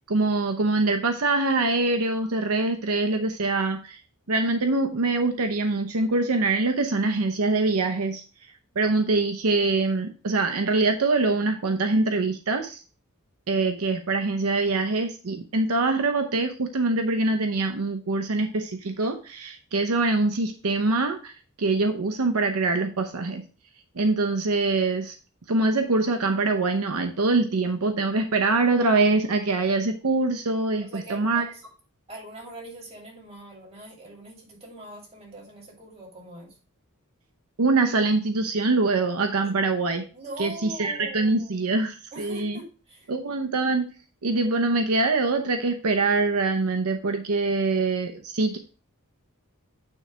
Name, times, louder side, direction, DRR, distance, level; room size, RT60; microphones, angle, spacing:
voice 1, 0.1-4.0 4.3-8.2 8.8-12.8 13.5-23.4 24.0-25.1 25.5-31.5 37.6-40.0 40.4-40.5 40.8-42.5 43.1-43.8 44.2-48.6, right 3 dB, 75° right, 6 dB, 0.8 m, -24 dB
voice 2, 30.8-31.6 32.1-36.6 39.4-39.5 40.1-41.7 42.1-43.1, right 1 dB, 30° right, -2 dB, 2.7 m, -42 dB
9.5 x 3.3 x 4.9 m, 0.36 s
head